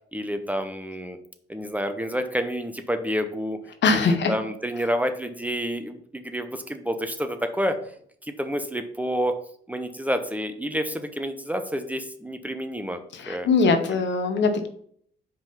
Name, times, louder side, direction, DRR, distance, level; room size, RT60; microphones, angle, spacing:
voice 1, 0.1-1.2 1.5-3.6 4.0-7.8 8.3-9.3 9.7-13.0 13.3-13.8, equal, 5° right, 7 dB, 0.6 m, -29 dB
voice 2, 3.8-4.3 13.1-14.7, left 4 dB, 65° left, 8 dB, 1.0 m, -22 dB
5.1 x 3.7 x 5.5 m, 0.62 s
cardioid pair, 90°, 20 cm